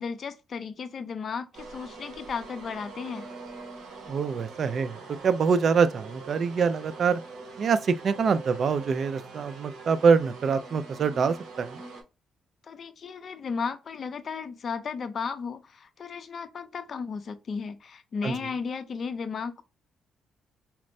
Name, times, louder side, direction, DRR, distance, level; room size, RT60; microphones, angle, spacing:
voice 1, 0.0-3.3 12.6-19.6, left 5 dB, 50° left, 0.4 m, -34 dB
sound 1, 1.5-12.0, right 3 dB, 75° right, 0.9 m, -44 dB
voice 2, 4.1-5.0 5.2-7.2 7.6-11.8 18.2-18.3, right 5 dB, 55° right, 0.4 m, -25 dB
4.3 x 2.0 x 2.6 m
cardioid pair, 90°, 0 cm